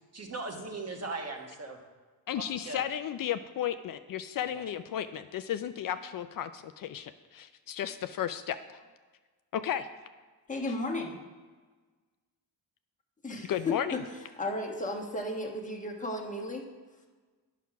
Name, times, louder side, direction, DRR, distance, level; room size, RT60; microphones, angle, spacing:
voice 1, 0.1-1.8 2.3-2.8 4.5-4.6, right 3 dB, 40° right, 2 dB, 1.3 m, -39 dB
voice 2, 2.3-8.8 9.5-9.9 13.5-13.9, left 10 dB, 60° left, 10 dB, 0.5 m, -34 dB
voice 3, 10.5-11.2 13.2-14.0 14.4-16.6, left 1 dB, 20° left, 2 dB, 1.3 m, -34 dB
9.4 x 6.0 x 5.8 m, 1.4 s
cardioid pair, 110°, 39 cm